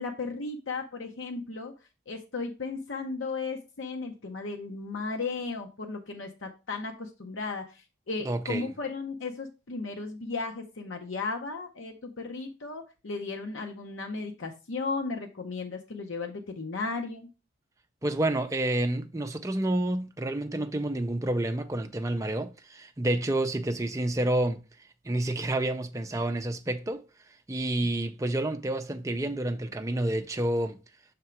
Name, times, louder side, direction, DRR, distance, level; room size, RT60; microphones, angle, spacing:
voice 1, 0.0-1.7 2.1-17.3, left 4 dB, 75° left, 0.7 m, -35 dB
voice 2, 8.2-8.7 18.0-24.6 25.0-27.0 27.5-30.8, right 1 dB, 15° right, 0.5 m, -29 dB
5.8 x 3.7 x 4.4 m
head